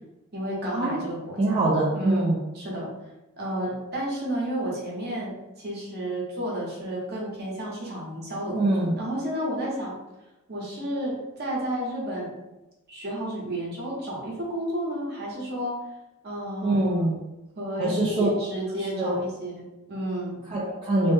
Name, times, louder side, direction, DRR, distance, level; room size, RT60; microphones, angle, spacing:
voice 1, 0.3-1.6 1.9-2.9 3.4-9.9 10.5-12.3 12.9-15.8 16.2-17.0 17.6-20.4, right 1 dB, 50° right, -4 dB, 1.0 m, -31 dB
voice 2, 1.4-2.4 8.5-8.9 16.6-17.2 17.8-18.3 18.9-19.2 20.5-21.1, right 2 dB, 25° right, -7 dB, 0.5 m, -23 dB
3.0 x 2.1 x 3.2 m, 1.0 s
head